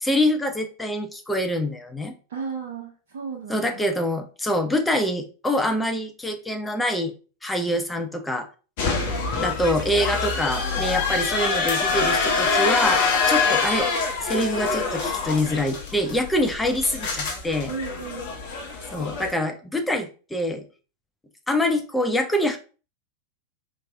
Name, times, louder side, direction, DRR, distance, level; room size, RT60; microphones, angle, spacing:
voice 1, 0.0-2.1 3.5-7.1 7.4-8.5 9.4-13.9 14.2-17.7 18.9-20.7 21.5-22.6, left 1 dB, 5° left, 6 dB, 0.5 m, -25 dB
voice 2, 2.3-3.9 17.7-18.3, right 5 dB, 55° right, -2 dB, 0.8 m, -34 dB
sound 1, 8.8-19.3, left 4 dB, 45° left, 1.0 m, -25 dB
4.5 x 3.0 x 2.5 m, 0.35 s
figure-of-eight pair, 90°, 0 cm